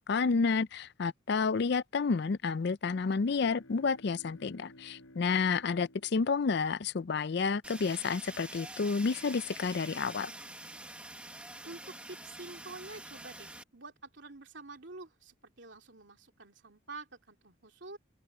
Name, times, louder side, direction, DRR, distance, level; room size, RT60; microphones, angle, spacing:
voice 1, 0.0-10.3, left 5 dB, 55° left, 0.4 m, -30 dB
sound 1, 3.0-7.0, left 1 dB, 85° left, 6.7 m, -56 dB
Fire, 7.6-13.6, right 1 dB, 5° right, 1.4 m, -46 dB
voice 2, 11.6-18.0, right 3 dB, 60° right, 3.0 m, -48 dB
open air
head